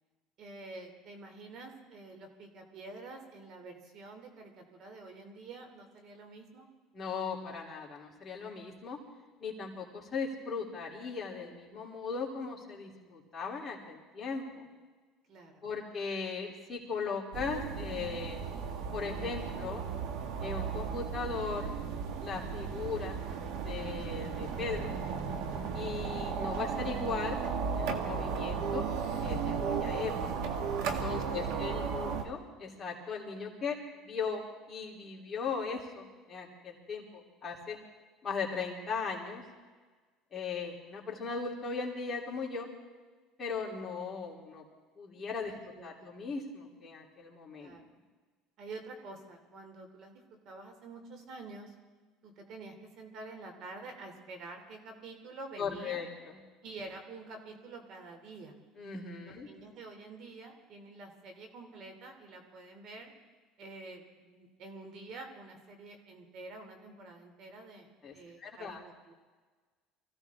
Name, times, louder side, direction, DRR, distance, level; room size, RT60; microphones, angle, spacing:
voice 1, 0.4-6.7 15.3-15.6 31.0-32.3 45.5-46.1 47.6-47.9 48.6-51.7 52.2-56.0 56.6-58.6 59.2-63.1 63.6-69.1, right 3 dB, 55° right, 5 dB, 2.9 m, -48 dB
voice 2, 6.9-9.0 9.4-14.6 15.6-18.4 18.9-19.8 20.4-21.7 22.2-23.2 23.5-24.9 25.7-27.4 27.7-28.9 29.2-30.3 30.8-33.8 34.0-37.8 38.2-39.4 40.3-42.7 43.4-44.6 45.0-45.5 45.8-47.8 55.6-56.4 58.8-59.5 68.0-68.1 68.4-68.8, left 5 dB, 25° left, -3 dB, 3.3 m, -38 dB
sound 1, 17.3-32.2, right 6 dB, 70° right, 1.8 m, -35 dB
24.5 x 16.0 x 3.6 m, 1.4 s
supercardioid pair, 120°, 0 cm